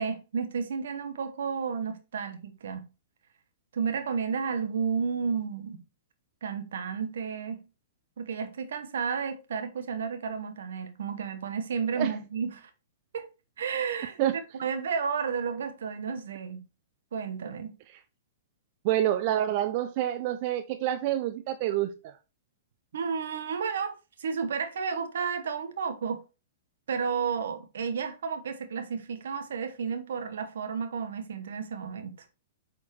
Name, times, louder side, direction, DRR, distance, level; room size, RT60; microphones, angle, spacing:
voice 1, 0.0-2.9 3.7-5.8 6.4-7.6 8.2-12.7 13.1-13.3 13.6-14.2 14.6-16.7 17.1-17.7 22.9-26.2 26.9-32.2, right 6 dB, 70° right, 1.1 m, -32 dB
voice 2, 18.8-21.9, right 12 dB, 45° right, 0.6 m, -27 dB
8.3 x 4.4 x 3.0 m
hypercardioid pair, 115°, 0 cm